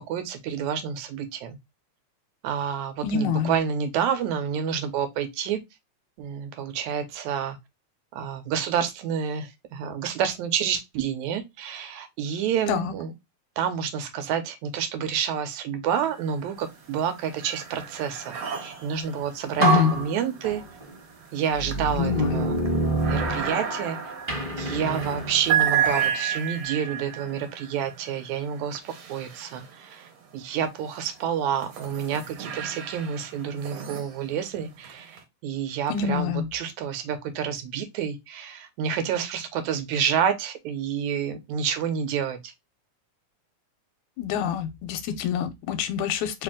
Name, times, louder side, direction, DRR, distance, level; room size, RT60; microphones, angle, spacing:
voice 1, 0.0-1.6 2.4-5.6 6.2-7.6 8.1-13.1 13.6-18.4 18.6-20.6 21.3-22.6 23.1-24.0 24.6-42.5, right 8 dB, 80° right, 2.1 m, -29 dB
voice 2, 3.0-3.5 12.7-12.9 19.6-20.0 22.0-22.5 35.9-36.5 44.2-46.4, left 8 dB, 85° left, 2.0 m, -26 dB
sound 1, 15.9-16.6 16.9-30.1 30.7-35.2, right 8 dB, 65° right, 2.0 m, -32 dB
sound 2, 19.0-19.2 19.6-20.9 21.5-23.9 24.3-26.1, right 2 dB, 15° right, 0.9 m, -27 dB
4.7 x 2.7 x 3.6 m
omnidirectional pair, 3.4 m